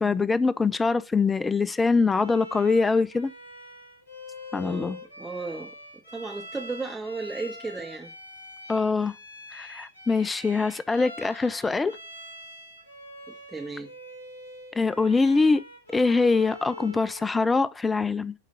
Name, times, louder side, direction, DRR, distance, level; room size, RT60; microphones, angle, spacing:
voice 1, 0.0-3.3 4.5-5.0 8.7-9.1 9.5-12.0 14.8-15.6 15.9-18.3, left 4 dB, 10° left, 0.6 m, -23 dB
Bowed string instrument, 2.1-17.3, left 1 dB, 75° left, 1.9 m, -44 dB
voice 2, 4.6-5.7 6.1-8.1 13.5-13.9, right 3 dB, 10° right, 1.6 m, -35 dB
10.5 x 3.7 x 6.8 m
figure-of-eight pair, 90°, 0 cm